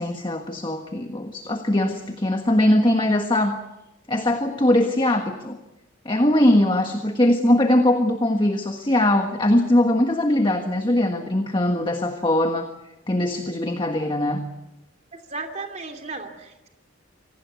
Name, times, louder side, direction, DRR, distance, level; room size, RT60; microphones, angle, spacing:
voice 1, 0.0-3.5 4.1-5.6 6.0-12.7 13.1-14.4, left 1 dB, 25° left, 5 dB, 1.5 m, -21 dB
voice 2, 15.1-16.7, right 3 dB, 35° right, 4 dB, 2.9 m, -35 dB
26.5 x 19.0 x 8.3 m, 0.94 s
head